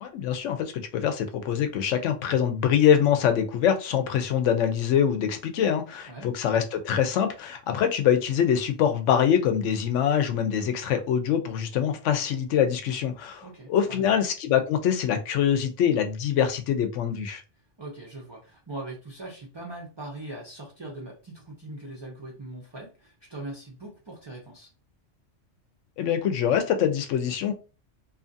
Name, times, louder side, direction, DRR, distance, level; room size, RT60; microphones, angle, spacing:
voice 1, 0.0-13.4 13.7-17.4 26.0-27.5, left 8 dB, 75° left, 7 dB, 0.9 m, -24 dB
voice 2, 13.4-14.0 17.8-24.7, right 2 dB, 35° right, -2 dB, 0.4 m, -41 dB
2.7 x 2.4 x 2.6 m, 0.32 s
omnidirectional pair, 1.3 m